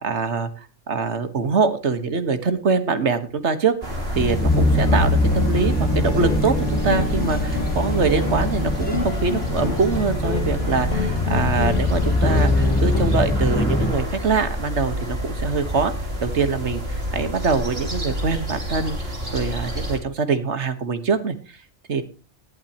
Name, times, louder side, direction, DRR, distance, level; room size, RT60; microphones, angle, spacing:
voice 1, 0.0-3.7 4.2-15.9 16.2-21.4 21.9-22.0, right 5 dB, 75° right, 10 dB, 1.8 m, -24 dB
sound 1, 3.8-20.0, equal, 60° right, 3.8 m, -28 dB
sound 2, 4.1-13.9, left 2 dB, 10° left, 1.1 m, -23 dB
sound 3, 4.5-13.0, left 3 dB, 90° left, 2.3 m, -30 dB
18.5 x 12.0 x 3.0 m, 0.32 s
omnidirectional pair, 1.2 m